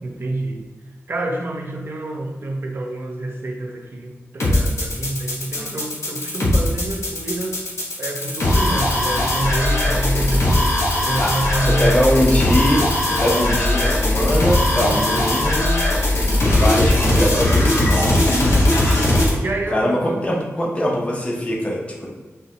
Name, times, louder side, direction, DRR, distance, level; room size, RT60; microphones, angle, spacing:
voice 1, 0.0-0.7 1.1-7.6 8.0-10.7 11.0-12.2 14.7-15.3 16.1-16.6 18.5-18.9 19.3-20.3, right 2 dB, 50° right, 2 dB, 0.6 m, -28 dB
sound 1, 4.4-19.3, left 1 dB, 65° left, 1.1 m, -19 dB
voice 2, 11.6-15.8 16.4-18.3 19.7-22.1, equal, 25° left, -2 dB, 0.8 m, -22 dB
5.3 x 2.2 x 2.9 m, 1.3 s
wide cardioid pair, 95°, 5 cm